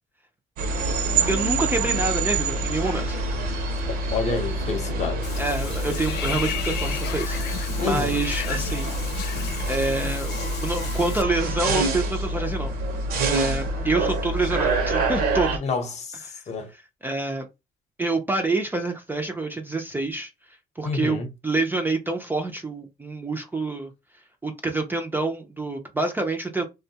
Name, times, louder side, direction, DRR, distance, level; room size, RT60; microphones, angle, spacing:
sound 1, 0.6-15.6, right 2 dB, 65° right, 0.7 m, -26 dB
voice 1, 1.3-3.2 5.4-9.0 9.7-10.3 10.6-12.7 13.3-15.6 16.3-16.4 16.7-17.5 18.0-20.3 20.8-23.9 24.4-26.7, right 2 dB, 10° right, 0.4 m, -27 dB
voice 2, 4.1-5.2 7.8-8.2 15.6-16.7 20.8-21.3, left 4 dB, 40° left, 0.8 m, -28 dB
Water / Bathtub (filling or washing), 5.2-11.2, left 8 dB, 75° left, 0.5 m, -34 dB
2.6 x 2.2 x 2.8 m
cardioid pair, 110°, 17 cm